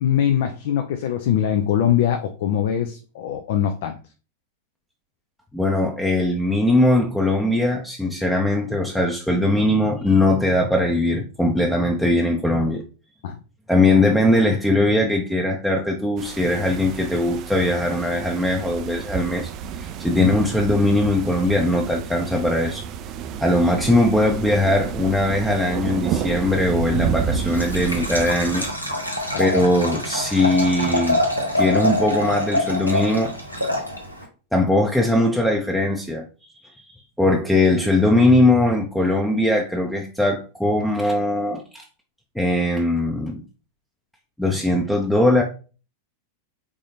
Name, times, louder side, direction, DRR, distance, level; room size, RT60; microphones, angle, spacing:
voice 1, 0.0-4.0 13.2-13.4 20.2-20.3 29.3-29.4, left 10 dB, 55° left, 0.5 m, -22 dB
voice 2, 5.5-12.8 13.7-22.8 23.4-28.7 29.0-29.1 29.4-31.2 31.6-33.3 34.5-36.3 37.2-41.9 42.3-43.4 44.4-45.4, left 1 dB, 5° left, 0.6 m, -20 dB
sound 1, 16.2-28.7, right 7 dB, 35° right, 0.4 m, -30 dB
Liquid, 27.4-34.2, left 1 dB, 90° left, 1.0 m, -25 dB
4.9 x 3.8 x 2.7 m
figure-of-eight pair, 90°, 0 cm